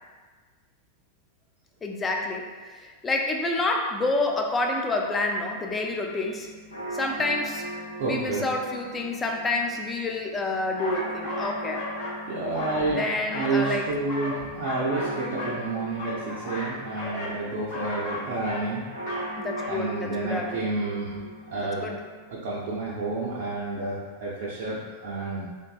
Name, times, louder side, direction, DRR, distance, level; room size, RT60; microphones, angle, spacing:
voice 1, 1.8-6.5 6.9-7.7 8.1-11.9 12.8-13.8 19.4-20.6 21.6-22.0, left 2 dB, 15° left, 1 dB, 0.4 m, -28 dB
sound 1, 5.6-22.2, right 1 dB, 75° left, 0.4 m, -39 dB
voice 2, 8.0-8.5 12.3-13.1 13.3-18.8 19.7-21.1 21.5-21.8 22.3-25.5, right 3 dB, 50° right, -6 dB, 0.4 m, -30 dB
sound 2, 10.8-12.2 12.5-13.8 14.1-15.6 15.9-17.4 17.7-18.7 19.0-19.3 19.6-19.8, left 2 dB, 50° left, 0.8 m, -35 dB
3.5 x 2.5 x 2.3 m, 1.4 s
figure-of-eight pair, 90°, 0 cm